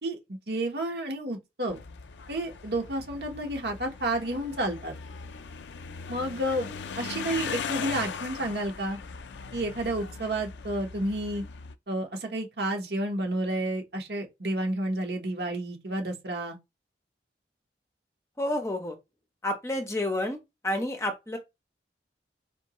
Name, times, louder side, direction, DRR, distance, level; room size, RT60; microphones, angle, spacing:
voice 1, 0.0-1.8 2.3-5.0 6.1-6.7 7.0-9.0 9.5-11.4 11.9-16.6, right 1 dB, 65° right, 1.3 m, -31 dB
sound 1, 1.7-11.7, left 6 dB, 85° left, 0.5 m, -39 dB
voice 2, 18.4-19.0 19.4-20.4 20.6-21.4, left 1 dB, 15° left, 0.8 m, -29 dB
4.4 x 2.9 x 3.0 m
head